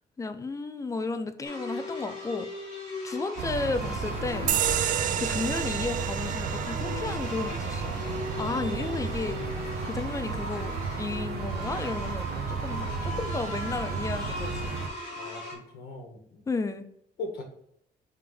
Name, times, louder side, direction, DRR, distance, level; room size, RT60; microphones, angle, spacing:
voice 1, 0.2-2.7 3.0-4.6 5.2-8.0 8.4-9.4 9.8-14.8 16.5-16.9, left 3 dB, 20° left, 0.5 m, -33 dB
sound 1, 1.4-15.5, left 2 dB, 50° left, 2.2 m, -38 dB
sound 2, 3.4-14.9, right 5 dB, 85° right, 0.8 m, -34 dB
sound 3, 4.5-11.5, right 10 dB, 55° right, 0.4 m, -33 dB
voice 2, 8.5-9.3 15.2-16.4 17.2-17.4, left 2 dB, 75° left, 1.7 m, -41 dB
5.5 x 3.5 x 5.1 m
cardioid pair, 140°, 16 cm